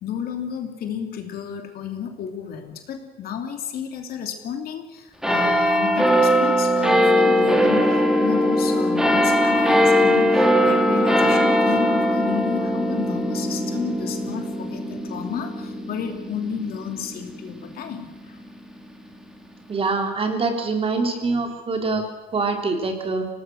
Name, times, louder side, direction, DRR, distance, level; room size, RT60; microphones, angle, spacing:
voice 1, 0.0-18.4, left 8 dB, 65° left, 5 dB, 2.9 m, -32 dB
sound 1, 5.2-18.1 18.8-18.9, equal, 5° right, 2.9 m, -20 dB
voice 2, 19.7-22.0 22.3-23.3, right 3 dB, 35° right, 3 dB, 3.8 m, -24 dB
24.5 x 18.5 x 6.4 m, 1.0 s
cardioid pair, 110°, 17 cm